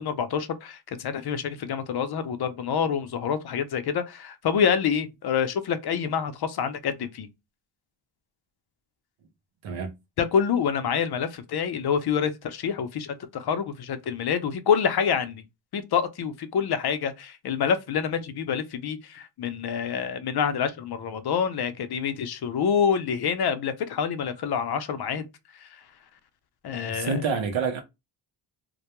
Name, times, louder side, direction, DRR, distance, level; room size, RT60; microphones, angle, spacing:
voice 1, 0.0-7.3 10.2-15.4 15.7-25.2 25.5-25.8 26.6-27.2, left 7 dB, 55° left, 0.5 m, -27 dB
voice 2, 9.6-9.9 26.9-27.8, right 5 dB, 70° right, 0.6 m, -27 dB
2.2 x 2.1 x 2.9 m
cardioid pair, 65°, 48 cm